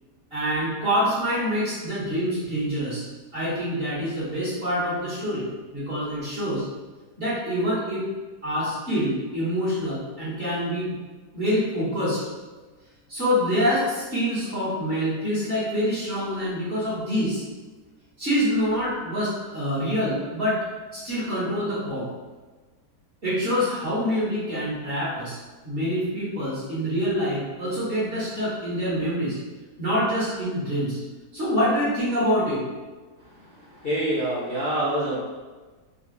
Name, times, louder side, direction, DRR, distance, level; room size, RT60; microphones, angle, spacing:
voice 1, 0.3-3.0 3.3-5.4 5.7-6.6 7.2-8.0 8.4-10.9 11.3-12.2 13.1-17.4 18.2-20.6 20.9-22.1 23.2-25.4 25.6-29.4 29.8-31.0 31.3-32.6, equal, 35° right, -9 dB, 1.6 m, -26 dB
voice 2, 33.8-35.2, right 1 dB, 40° left, -9 dB, 1.0 m, -25 dB
3.9 x 3.2 x 3.2 m, 1.3 s
omnidirectional pair, 1.8 m